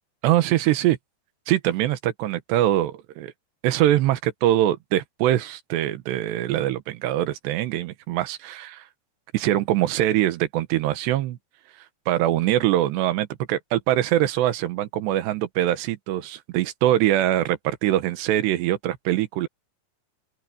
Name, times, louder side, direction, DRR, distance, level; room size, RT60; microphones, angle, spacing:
voice 1, 0.2-1.0 1.5-3.3 3.6-8.8 9.3-11.4 12.1-19.5, right 13 dB, 80° right, 3.3 m, -23 dB
open air
omnidirectional pair, 4.9 m